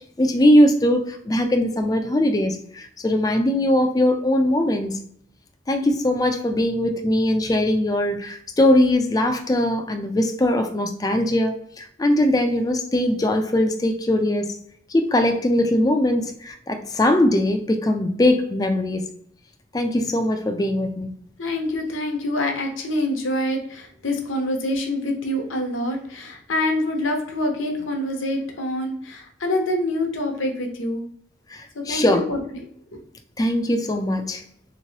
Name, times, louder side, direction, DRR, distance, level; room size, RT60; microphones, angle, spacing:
voice 1, 0.2-5.0 5.7-14.5 14.9-19.1 19.7-21.1 31.5-32.2 33.4-34.4, left 1 dB, 20° left, 0.3 m, -21 dB
voice 2, 21.4-31.1 31.7-32.4 32.9-33.0, left 1 dB, 80° left, 0.8 m, -26 dB
3.6 x 3.0 x 2.8 m
head